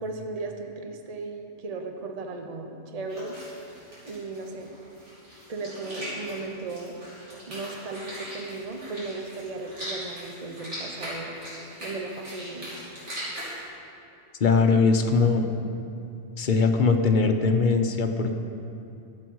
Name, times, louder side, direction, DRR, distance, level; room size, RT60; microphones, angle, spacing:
voice 1, 0.0-3.4 4.0-4.7 5.5-7.0 7.5-11.3 11.8-12.7, right 3 dB, 35° right, 4 dB, 0.8 m, -36 dB
sound 1, 3.1-13.6, equal, 75° right, 3.4 m, -40 dB
voice 2, 14.4-15.5 16.4-18.3, left 4 dB, 45° left, 5 dB, 0.8 m, -21 dB
13.0 x 7.8 x 4.6 m, 2.7 s
omnidirectional pair, 1.2 m